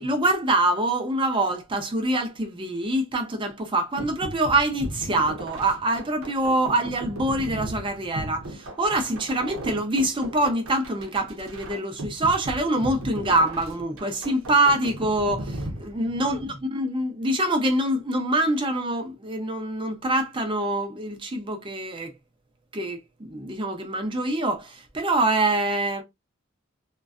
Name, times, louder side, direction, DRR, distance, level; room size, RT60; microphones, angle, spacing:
voice 1, 0.0-22.1 22.7-26.0, right 1 dB, 25° right, 0.5 m, -25 dB
sound 1, 4.0-16.5, right 1 dB, 75° right, 0.7 m, -37 dB
2.5 x 2.2 x 2.3 m
head